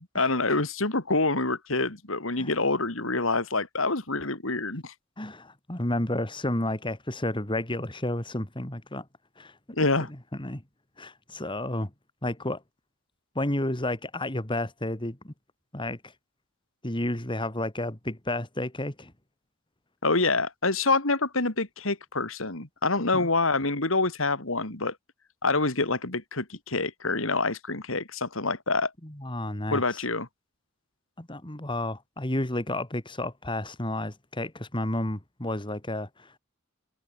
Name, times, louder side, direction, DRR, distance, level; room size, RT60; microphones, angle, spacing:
voice 1, 0.0-4.9 9.8-10.1 20.0-24.9 25.4-28.9 29.7-30.3, left 3 dB, 70° left, 3.3 m, -26 dB
voice 2, 5.2-9.0 9.4-9.8 10.4-10.6 11.0-11.9 12.2-12.6 13.3-15.3 15.7-16.0 16.8-19.1 23.1-23.3 29.0-30.0 31.2-36.4, left 1 dB, 25° left, 2.9 m, -31 dB
head